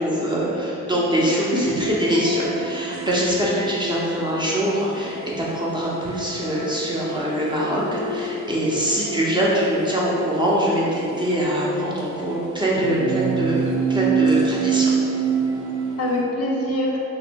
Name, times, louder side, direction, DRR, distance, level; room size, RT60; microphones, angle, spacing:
voice 1, 0.0-14.9, equal, 15° right, -5 dB, 0.6 m, -23 dB
voice 2, 0.9-1.6 16.0-17.0, left 1 dB, 50° left, -2 dB, 0.5 m, -26 dB
sound 1, 1.6-16.2, right 5 dB, 75° right, 0.5 m, -28 dB
2.9 x 2.0 x 3.3 m, 2.6 s
cardioid pair, 90°, 30 cm